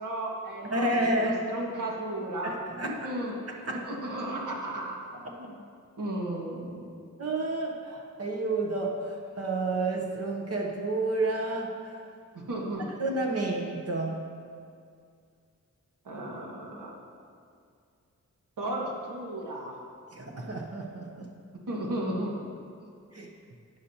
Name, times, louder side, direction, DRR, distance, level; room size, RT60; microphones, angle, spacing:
voice 1, 0.0-2.6 2.8-3.4 3.6-5.0 5.4-5.5 6.0-6.9 12.3-13.0 16.1-17.0 18.6-19.8 21.7-22.4, right 1 dB, 85° right, -3 dB, 1.8 m, -34 dB
voice 2, 0.7-1.4 2.4-3.1 3.5-3.8 5.2-5.3 7.2-12.0 13.0-14.2 20.1-21.3 23.1-23.3, right 2 dB, 50° right, 0 dB, 0.9 m, -30 dB
12.0 x 9.7 x 2.9 m, 2.3 s
wide cardioid pair, 130°, 31 cm